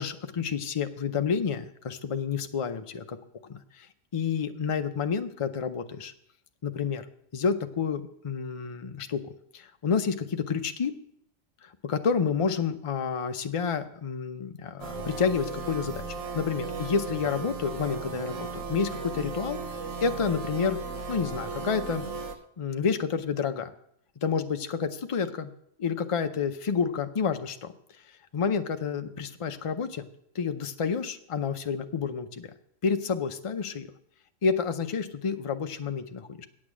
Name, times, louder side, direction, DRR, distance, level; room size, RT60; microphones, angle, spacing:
voice 1, 0.0-3.2 3.4-3.9 4.1-6.1 6.6-7.1 7.3-10.9 11.6-16.0 16.3-19.6 20.0-20.8 21.1-22.0 22.6-23.7 24.2-25.5 25.8-27.7 28.3-30.1 30.3-32.5 32.8-33.9 34.4-36.4, left 6 dB, 40° left, 8 dB, 0.4 m, -29 dB
sound 1, 14.8-22.3, right 4 dB, 85° right, 1.2 m, -36 dB
8.6 x 8.4 x 6.1 m, 0.72 s
omnidirectional pair, 1.3 m